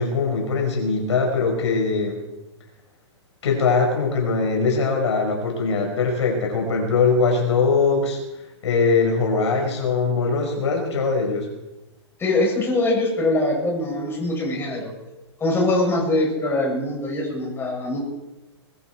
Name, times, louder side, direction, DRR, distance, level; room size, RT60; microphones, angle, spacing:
voice 1, 0.0-2.2 3.4-8.2 8.6-11.5, left 4 dB, 70° left, 1 dB, 5.3 m, -21 dB
voice 2, 12.2-14.9 15.4-18.0, left 2 dB, 15° left, -2 dB, 6.5 m, -23 dB
21.0 x 13.0 x 4.6 m, 1.0 s
hypercardioid pair, 120°, 15 cm